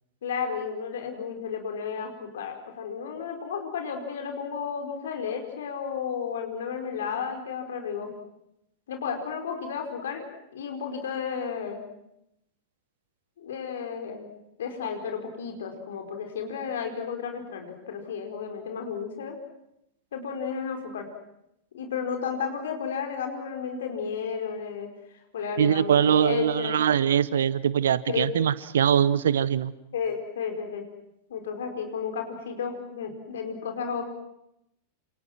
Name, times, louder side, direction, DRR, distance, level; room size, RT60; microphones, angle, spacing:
voice 1, 0.2-8.1 8.9-10.2 10.5-11.8 13.4-14.3 14.6-19.4 20.1-21.1 21.7-24.9 25.3-26.8 28.1-28.3 29.9-30.8 31.3-34.0, left 6 dB, 60° left, 4 dB, 5.0 m, -33 dB
voice 2, 25.6-29.7, right 9 dB, 65° right, 18 dB, 1.0 m, -22 dB
28.5 x 27.5 x 6.1 m, 0.82 s
figure-of-eight pair, 90°, 0 cm